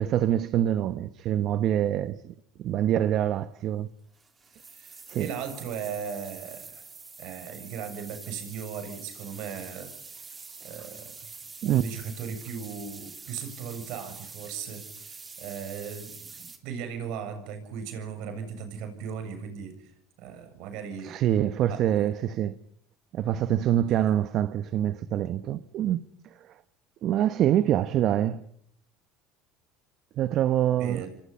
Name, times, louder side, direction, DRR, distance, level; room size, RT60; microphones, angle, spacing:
voice 1, 0.0-3.9 5.1-5.3 11.6-11.8 21.0-22.5 23.1-26.0 27.0-28.4 30.2-31.0, right 11 dB, 55° right, 1.1 m, -25 dB
sound 1, 4.1-16.6, right 4 dB, 25° right, 3.8 m, -45 dB
voice 2, 4.5-6.9 7.2-10.4 10.6-11.1 11.6-19.9 20.2-21.2 21.7-21.8 30.8-31.1, right 7 dB, 70° right, 7.3 m, -37 dB
30.0 x 24.0 x 5.7 m
supercardioid pair, 100°, 0 cm